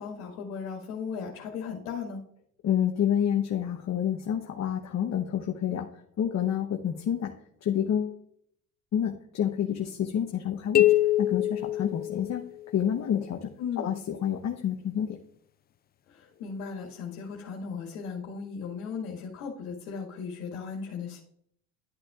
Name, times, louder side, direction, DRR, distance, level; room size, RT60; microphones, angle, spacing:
voice 1, 0.0-2.2 13.6-14.0 16.1-21.2, left 6 dB, 75° left, -2 dB, 1.9 m, -36 dB
voice 2, 2.6-7.3 7.6-8.2 8.9-12.4 12.7-15.2, left 9 dB, 40° left, 3 dB, 1.0 m, -29 dB
sound 1, 10.7-12.7, left 14 dB, 25° left, 0.4 m, -24 dB
11.5 x 8.7 x 2.4 m, 0.68 s
hypercardioid pair, 75°, 44 cm